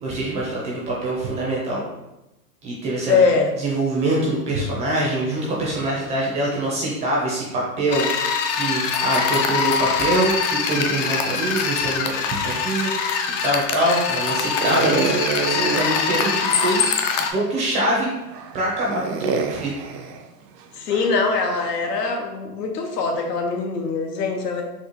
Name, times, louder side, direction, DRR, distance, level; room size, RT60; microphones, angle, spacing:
voice 1, 0.0-1.8 2.6-3.2 3.6-15.2 15.5-16.8 17.3-18.1 18.5-19.7, right 1 dB, 15° right, -4 dB, 0.4 m, -24 dB
voice 2, 3.1-3.5 20.8-24.6, left 4 dB, 80° left, 3 dB, 0.9 m, -22 dB
sound 1, 7.9-17.3, left 6 dB, 50° left, 0.5 m, -23 dB
sound 2, 14.6-17.0 17.6-17.7 18.3-22.1, right 5 dB, 85° right, 0.6 m, -28 dB
4.2 x 2.4 x 3.0 m, 0.99 s
hypercardioid pair, 135°, 47 cm